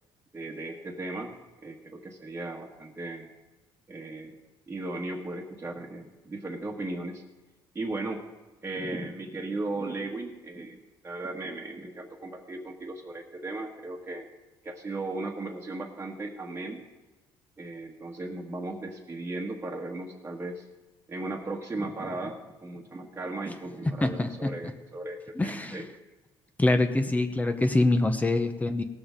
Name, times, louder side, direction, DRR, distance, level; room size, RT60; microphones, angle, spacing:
voice 1, 0.3-1.3 1.6-3.3 3.9-4.4 4.7-7.2 7.7-8.2 8.6-10.8 11.0-14.3 14.6-16.8 17.6-20.6 21.1-25.9, right 2 dB, 20° right, -2 dB, 1.4 m, -36 dB
voice 2, 23.9-24.5 25.4-25.9 26.6-28.8, left 2 dB, 15° left, 8 dB, 0.9 m, -25 dB
18.0 x 7.0 x 5.1 m, 1.2 s
cardioid pair, 95°, 10 cm